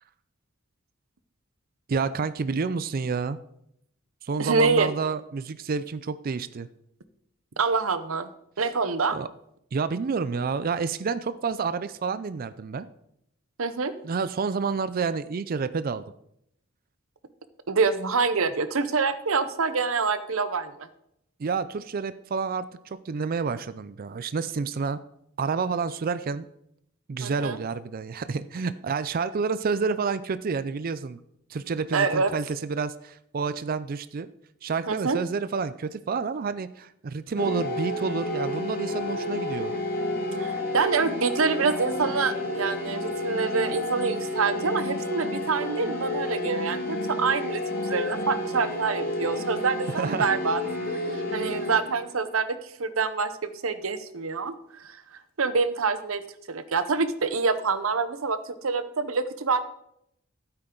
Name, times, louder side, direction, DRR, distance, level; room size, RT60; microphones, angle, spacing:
voice 1, 1.9-3.4 4.2-6.7 9.1-9.3 9.7-12.9 14.0-16.0 21.4-25.0 25.4-26.4 27.1-31.2 31.5-34.3 34.6-39.7 50.0-50.3, right 5 dB, 45° right, 14 dB, 0.4 m, -29 dB
voice 2, 4.4-4.9 7.6-8.3 8.6-9.2 13.6-13.9 17.7-20.9 27.2-27.6 31.9-32.3 34.9-35.2 40.4-50.6 50.9-55.0 55.4-56.2 56.5-59.6, right 4 dB, 85° right, 12 dB, 0.8 m, -26 dB
sound 1, 37.4-52.2, left 1 dB, 50° left, 2.0 m, -31 dB
12.5 x 9.0 x 3.8 m, 0.75 s
head